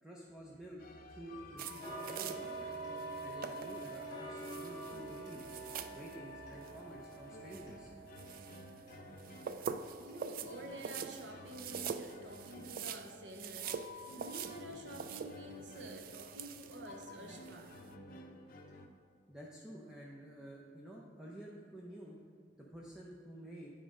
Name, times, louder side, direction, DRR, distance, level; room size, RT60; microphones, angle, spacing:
voice 1, 0.0-2.7 3.2-5.6 5.9-7.9 9.6-9.7 19.3-22.2 22.6-23.7, right 1 dB, 5° right, 0.6 m, -50 dB
sound 1, 0.8-18.9, left 2 dB, 55° left, 0.6 m, -52 dB
sound 2, 1.6-17.9, right 6 dB, 50° right, 0.3 m, -46 dB
Tick-tock, 1.8-12.7 13.1-13.2 13.7-13.8 14.3-14.4 14.9-15.0 15.5-15.6 16.1-16.2 16.7-16.8, right 4 dB, 25° left, 1.9 m, -49 dB
voice 2, 9.9-17.8, right 1 dB, 80° right, 0.8 m, -49 dB
9.2 x 5.1 x 3.7 m
head